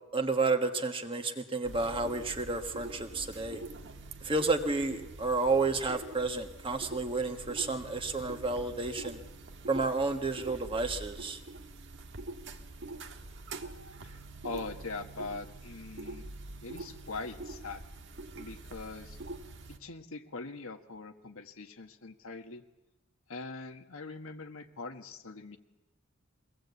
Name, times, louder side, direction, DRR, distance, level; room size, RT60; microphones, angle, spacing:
voice 1, 0.1-3.6 4.2-9.2 9.7-11.4, right 3 dB, 25° right, 6 dB, 1.5 m, -31 dB
sound 1, 1.6-19.8, right 2 dB, 60° right, 1.4 m, -45 dB
voice 2, 14.4-16.2 16.6-17.8 18.4-19.2 19.7-22.6 23.3-25.6, left 3 dB, 80° left, 5 dB, 1.5 m, -42 dB
23.5 x 18.0 x 8.3 m, 1.0 s
head